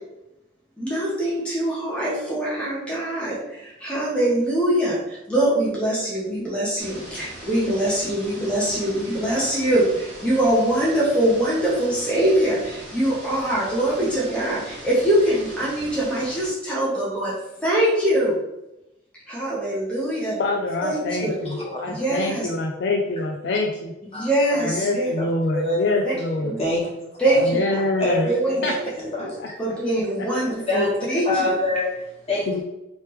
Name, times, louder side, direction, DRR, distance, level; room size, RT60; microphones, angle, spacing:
voice 1, 0.8-17.3 17.6-18.4 19.3-20.4 20.8-21.4 21.8-22.5 24.1-25.1 26.0-26.1 26.4-26.6 27.2-27.8 28.3-28.7 29.2-29.3 29.6-31.5, right 1 dB, 5° left, -6 dB, 0.8 m, -23 dB
sound 1, 6.8-16.5, right 1 dB, 60° right, 1.2 m, -40 dB
voice 2, 20.4-21.6 21.8-23.9 24.7-26.6 27.4-28.3 28.6-28.7 29.4-29.5 32.5-32.6, left 2 dB, 55° left, 1 dB, 0.3 m, -25 dB
voice 3, 21.4-21.8 24.1-24.7 25.2-25.8 26.6-26.8 27.2-27.4 28.0-29.2 30.7-30.9 31.2-32.5, left 2 dB, 30° left, -7 dB, 1.3 m, -26 dB
3.2 x 3.2 x 3.0 m, 0.92 s
head